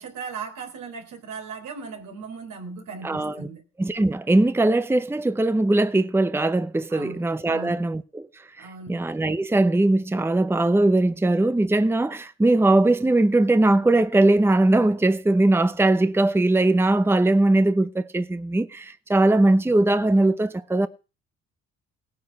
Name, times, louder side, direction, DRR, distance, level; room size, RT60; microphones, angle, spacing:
voice 1, 0.0-3.6 6.9-7.7 8.6-8.9, right 5 dB, 80° right, 4.0 m, -37 dB
voice 2, 3.0-3.4 3.8-8.3 8.6-20.9, right 2 dB, 10° right, 0.8 m, -20 dB
17.5 x 9.7 x 5.9 m
cardioid pair, 90°, 30 cm